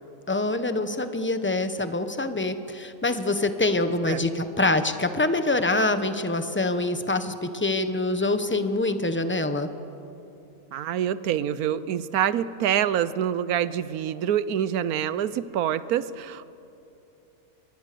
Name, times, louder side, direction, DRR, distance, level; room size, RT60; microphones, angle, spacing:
voice 1, 0.3-9.7, left 2 dB, 10° left, 9 dB, 0.8 m, -25 dB
voice 2, 10.7-16.4, right 10 dB, 85° right, 16 dB, 1.2 m, -26 dB
25.0 x 21.0 x 6.8 m, 2.9 s
omnidirectional pair, 1.5 m